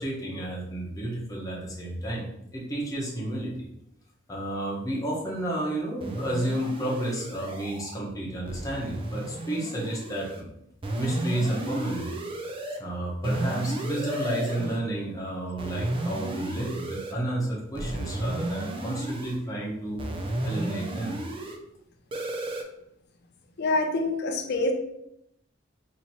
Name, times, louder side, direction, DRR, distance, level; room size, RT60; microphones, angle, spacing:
voice 1, 0.0-3.7 4.3-10.5 10.9-12.1 12.8-20.0 20.4-21.2, right 1 dB, 20° left, -4 dB, 1.0 m, -31 dB
sound 1, 6.0-8.0 8.5-10.4 10.8-12.8 13.2-14.8 15.6-17.1 17.7-19.4 20.0-21.6 22.1-22.6, right 1 dB, 30° right, 0.4 m, -33 dB
voice 2, 23.6-24.7, left 2 dB, 55° left, 5 dB, 0.5 m, -26 dB
3.0 x 2.8 x 4.1 m, 0.78 s
head